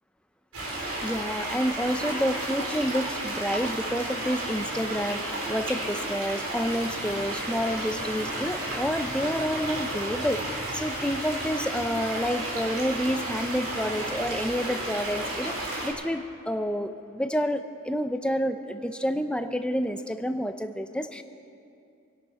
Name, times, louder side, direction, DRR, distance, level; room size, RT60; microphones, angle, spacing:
sound 1, 0.5-15.9, right 1 dB, 90° right, 3.9 m, -32 dB
voice 1, 0.7-21.2, equal, 5° left, 8 dB, 0.6 m, -29 dB
27.0 x 11.0 x 4.3 m, 2.5 s
head